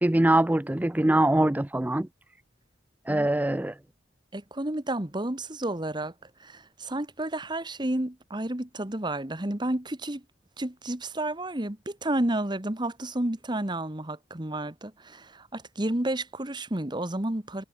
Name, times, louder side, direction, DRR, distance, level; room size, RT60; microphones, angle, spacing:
voice 1, 0.0-2.1 3.1-3.7, right 1 dB, 10° right, 0.4 m, -23 dB
voice 2, 4.3-6.1 6.4-10.2 10.6-17.6, right 1 dB, 25° right, 1.5 m, -31 dB
head